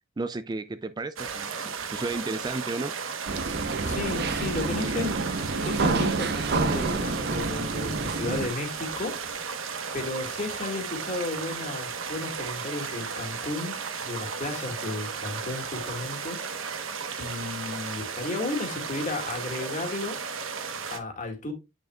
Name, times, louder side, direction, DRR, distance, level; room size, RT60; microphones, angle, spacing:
voice 1, 0.2-2.9, right 3 dB, 20° right, 0.3 m, -33 dB
sound 1, 1.2-21.0, right 5 dB, 80° right, 1.1 m, -35 dB
sound 2, 3.3-8.5, right 3 dB, 50° right, 0.6 m, -28 dB
voice 2, 3.8-5.1 5.6-9.6 9.9-16.9 17.2-20.2 20.9-21.5, left 2 dB, 40° left, 2.1 m, -34 dB
8.7 x 6.2 x 2.3 m
head